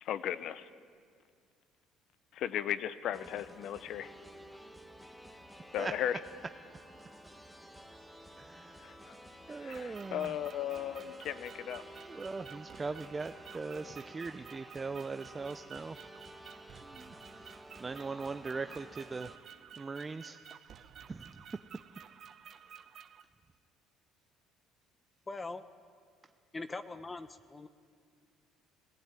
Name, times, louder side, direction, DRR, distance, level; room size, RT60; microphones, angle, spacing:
voice 1, 0.0-0.7 2.3-4.1 5.7-6.2 8.8-9.1 9.5-11.8, left 10 dB, 65° left, 15 dB, 0.8 m, -36 dB
sound 1, 3.1-19.4, right 1 dB, 5° left, 1.6 m, -52 dB
voice 2, 8.4-8.8 9.5-10.4 12.1-16.0 16.8-19.3 19.8-20.4 20.7-20.8 21.1-21.4, right 4 dB, 25° right, 9 dB, 0.6 m, -40 dB
sound 2, 9.7-23.2, right 8 dB, 50° right, 0.9 m, -53 dB
voice 3, 25.3-25.6 26.5-27.7, left 3 dB, 20° left, 11 dB, 0.8 m, -41 dB
18.5 x 16.0 x 8.9 m, 2.1 s
supercardioid pair, 90°, 0 cm